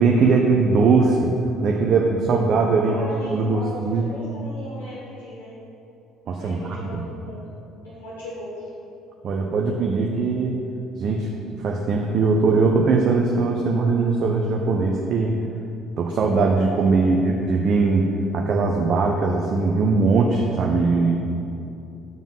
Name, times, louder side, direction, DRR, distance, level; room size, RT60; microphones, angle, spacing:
voice 1, 0.0-1.3 1.6-3.0 3.3-4.1 6.3-7.1 9.2-10.6 11.0-11.3 11.6-15.4 16.0-18.1 18.3-21.2, right 4 dB, 45° right, 1 dB, 0.8 m, -20 dB
voice 2, 2.8-5.6 6.3-8.6 17.0-17.5, equal, 75° left, -11 dB, 2.7 m, -38 dB
9.7 x 7.2 x 5.5 m, 2.7 s
figure-of-eight pair, 55°, 0 cm